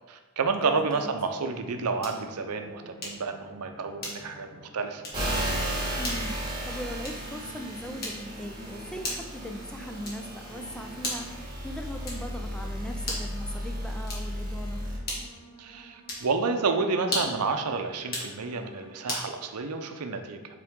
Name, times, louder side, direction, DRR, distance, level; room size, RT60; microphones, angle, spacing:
voice 1, 0.1-5.0 15.6-20.4, right 4 dB, 85° right, 6 dB, 0.6 m, -30 dB
voice 2, 0.8-1.1 6.0-14.8, equal, 5° left, 4 dB, 0.3 m, -39 dB
sound 1, 0.8-19.5, right 1 dB, 55° right, 1.5 m, -51 dB
sound 2, 2.0-2.3 3.0-3.3 4.0-4.4 5.0-5.3 6.0-6.3 7.0-7.3 8.0-8.4 9.0-9.4 10.0-10.4 11.0-11.4 12.0-12.4 13.0-13.4 14.0-14.4 15.0-15.4 16.0-16.3 17.0-17.5 18.0-18.3 19.1-19.3, left 1 dB, 45° left, 1.6 m, -35 dB
sound 3, 5.1-15.0, equal, 20° right, 1.9 m, -34 dB
7.5 x 3.7 x 3.6 m, 1.3 s
head